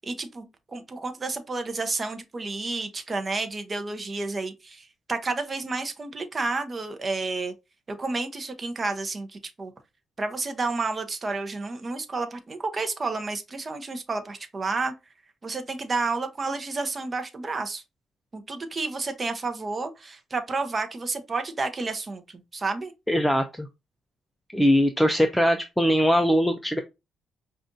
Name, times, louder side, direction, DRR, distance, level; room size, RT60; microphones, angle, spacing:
voice 1, 0.0-7.5 7.9-9.7 10.2-14.9 15.4-17.8 18.3-22.9, right 3 dB, 30° right, 0.8 m, -31 dB
voice 2, 23.1-23.7 24.5-26.8, equal, 5° left, 0.5 m, -21 dB
5.1 x 2.4 x 2.6 m
cardioid pair, 90°, 0 cm